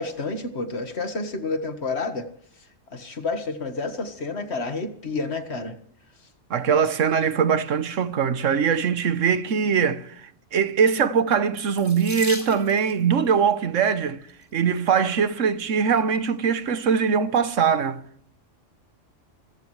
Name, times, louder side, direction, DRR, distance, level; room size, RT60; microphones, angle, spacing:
voice 1, 0.0-2.3 2.9-5.8, left 3 dB, 60° left, 1.9 m, -29 dB
voice 2, 6.5-14.2 14.5-18.0, right 6 dB, 85° right, 1.4 m, -22 dB
Water tap faucet / Sink (filling or washing), 11.7-13.0 14.0-14.4 15.1-15.2 15.6-15.7, left 1 dB, 10° left, 4.6 m, -36 dB
25.5 x 15.0 x 3.3 m
omnidirectional pair, 1.3 m